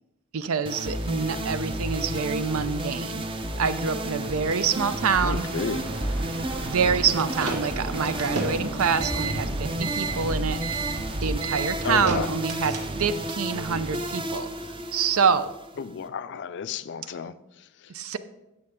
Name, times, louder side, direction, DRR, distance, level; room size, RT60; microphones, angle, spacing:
voice 1, 0.3-3.2 3.6-5.5 6.6-10.6 11.2-14.5 14.9-15.5 17.9-18.2, right 6 dB, 70° right, 13 dB, 0.6 m, -26 dB
sound 1, 0.6-16.0, right 1 dB, 25° right, 0.6 m, -32 dB
voice 2, 1.0-1.5 5.2-5.9 11.8-12.3 15.8-17.9, left 6 dB, 55° left, 14 dB, 0.4 m, -33 dB
sound 2, 3.8-13.5, equal, 55° right, 1.6 m, -38 dB
sound 3, 6.9-13.2, right 4 dB, 90° right, 1.4 m, -32 dB
11.0 x 7.8 x 3.7 m, 0.94 s
head